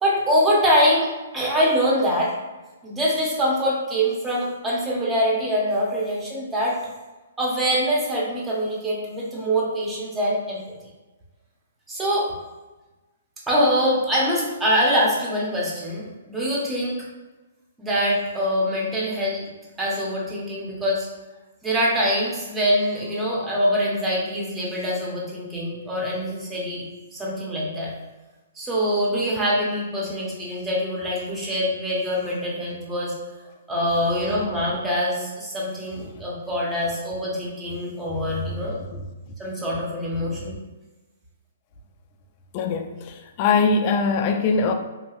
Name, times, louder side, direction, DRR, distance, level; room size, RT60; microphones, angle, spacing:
voice 1, 0.0-2.3 2.8-6.8 7.4-10.6 11.9-12.3 13.5-17.0 17.8-19.5 19.8-21.1 21.6-26.8 27.1-27.9 28.6-33.1 33.7-38.8 39.4-40.5, equal, 10° right, -5 dB, 0.8 m, -24 dB
voice 2, 42.5-44.7, left 4 dB, 40° left, 5 dB, 0.3 m, -22 dB
2.8 x 2.6 x 2.4 m, 1.2 s
hypercardioid pair, 135°, 0 cm